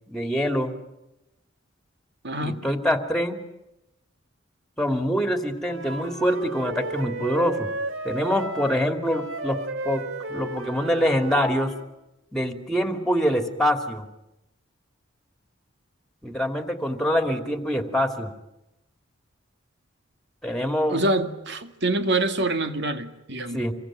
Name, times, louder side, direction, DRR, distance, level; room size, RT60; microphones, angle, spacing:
voice 1, 0.1-0.7 2.4-3.4 4.8-7.7 8.0-11.7 12.3-14.1 16.2-18.3 20.4-21.0 23.5-23.7, equal, ahead, 7 dB, 2.7 m, -25 dB
voice 2, 2.2-2.6 20.9-23.6, right 2 dB, 60° right, 8 dB, 2.1 m, -25 dB
Wind instrument woodwind instrument, 5.6-11.9, right 2 dB, 75° right, 2.2 m, -34 dB
27.5 x 23.0 x 9.1 m, 0.91 s
head